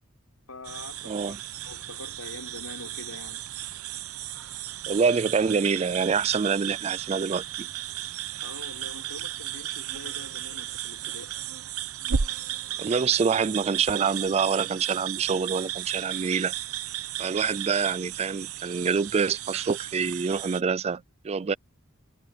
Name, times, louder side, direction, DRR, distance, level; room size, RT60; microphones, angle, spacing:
voice 1, 0.5-1.4 1.6-3.4 8.4-11.4, left 2 dB, 85° left, 5.1 m, -44 dB
sound 1, 0.6-20.6, right 10 dB, 80° right, 0.8 m, -34 dB
voice 2, 1.1-1.4 4.9-7.7 12.8-16.5 17.2-21.5, right 5 dB, 30° right, 0.3 m, -26 dB
head